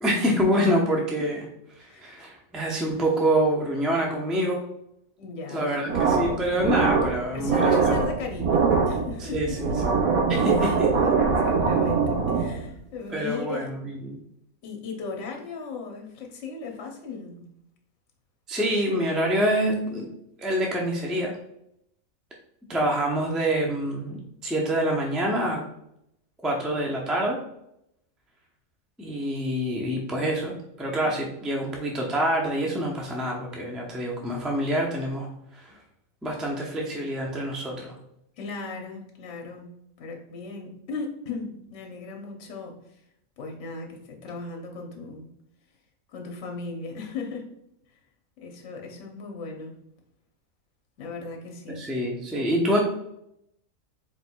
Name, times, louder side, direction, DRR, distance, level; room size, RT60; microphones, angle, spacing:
voice 1, 0.0-1.4 2.0-4.6 5.5-7.7 9.3-9.7 10.3-10.9 13.1-13.8 14.0-14.2 18.5-20.1 20.4-21.3 22.7-25.6 26.4-27.4 29.0-35.3 36.2-38.0 51.8-52.8, right 1 dB, ahead, -1 dB, 0.4 m, -26 dB
voice 2, 1.9-2.2 5.2-6.0 7.3-9.9 10.6-13.7 14.6-17.4 31.0-31.1 38.4-39.7 40.0-43.0 43.4-45.3 46.1-47.5 48.4-49.8 51.0-51.9, left 4 dB, 60° left, 1 dB, 1.1 m, -37 dB
sound 1, 5.9-12.7, right 5 dB, 80° right, 1.3 m, -23 dB
4.5 x 4.2 x 2.3 m, 0.78 s
omnidirectional pair, 1.5 m